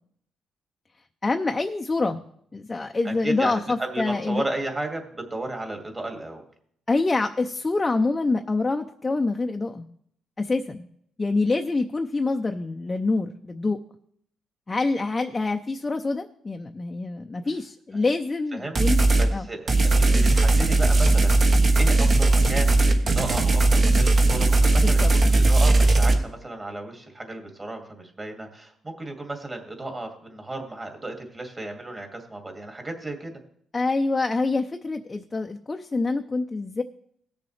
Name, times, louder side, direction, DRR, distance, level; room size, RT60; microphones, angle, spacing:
voice 1, 1.2-2.2 2.5-4.4 6.9-9.9 10.4-10.9 11.2-13.8 14.7-19.5 24.8-25.1 33.7-36.8, left 3 dB, 25° left, 4 dB, 0.6 m, -26 dB
voice 2, 3.0-6.4 18.5-18.8 19.2-33.4, right 2 dB, 25° right, 3 dB, 2.3 m, -34 dB
sound 1, 18.8-19.3 19.7-26.1, right 2 dB, 45° right, 1.4 m, -18 dB
17.5 x 6.9 x 3.3 m, 0.67 s
cardioid pair, 90°, 0 cm